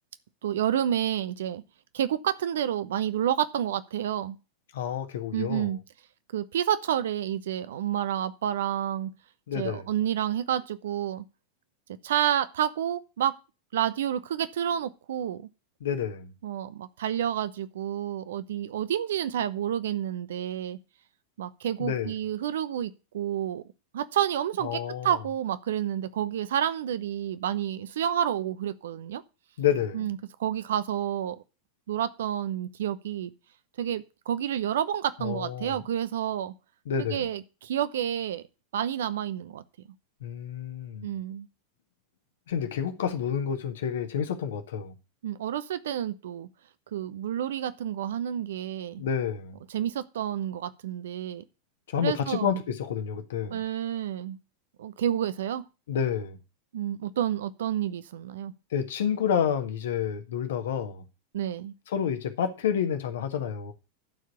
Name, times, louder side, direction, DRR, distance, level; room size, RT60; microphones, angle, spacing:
voice 1, 0.4-1.6 1.9-4.4 5.3-5.8 6.3-9.1 9.5-11.2 12.0-13.3 13.7-15.5 16.4-20.8 21.4-23.6 23.9-29.2 29.9-31.4 31.9-33.3 33.8-36.5 37.0-38.5 38.7-39.6 41.0-41.5 45.2-46.5 46.9-49.0 49.7-51.4 52.0-52.6 53.5-54.4 54.8-55.6 56.7-58.5 61.3-61.7, right 10 dB, 60° right, 0.9 m, -29 dB
voice 2, 4.7-5.7 9.5-9.9 15.8-16.3 21.8-22.1 24.6-25.2 29.6-30.1 35.2-35.8 36.8-37.3 40.2-41.1 42.5-44.9 49.0-49.6 51.9-53.6 55.9-56.4 58.7-61.0 61.9-63.7, left 8 dB, 60° left, 1.6 m, -29 dB
11.5 x 4.7 x 8.3 m
figure-of-eight pair, 90°, 0 cm